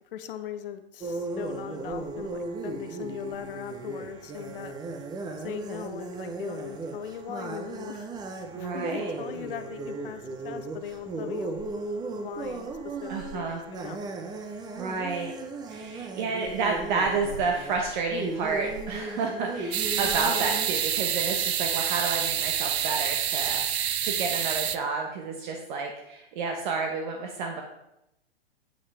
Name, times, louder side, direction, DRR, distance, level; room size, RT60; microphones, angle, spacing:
voice 1, 0.1-4.7 5.4-8.1 8.6-11.6 12.1-14.0, left 10 dB, 60° left, 9 dB, 1.0 m, -39 dB
sound 1, 1.0-20.7, right 3 dB, 15° right, 0.7 m, -36 dB
voice 2, 8.5-9.1 13.1-13.6 14.8-15.3 15.7-27.6, right 4 dB, 50° right, 2 dB, 1.2 m, -30 dB
sound 2, 19.7-24.8, right 9 dB, 80° right, 0.7 m, -27 dB
9.0 x 8.4 x 3.4 m, 0.87 s
hypercardioid pair, 130°, 31 cm